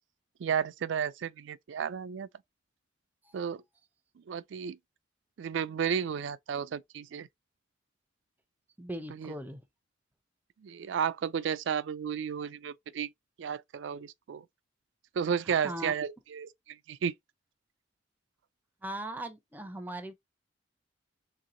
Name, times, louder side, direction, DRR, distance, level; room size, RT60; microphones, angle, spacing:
voice 1, 0.4-2.3 3.3-3.6 4.3-4.8 5.4-7.3 9.1-9.3 10.6-13.1 13.4-14.4 15.1-17.1, right 7 dB, 75° right, 0.3 m, -33 dB
voice 2, 8.8-9.6 15.5-15.9 18.8-20.1, right 1 dB, 10° right, 0.5 m, -39 dB
3.6 x 2.8 x 3.7 m
head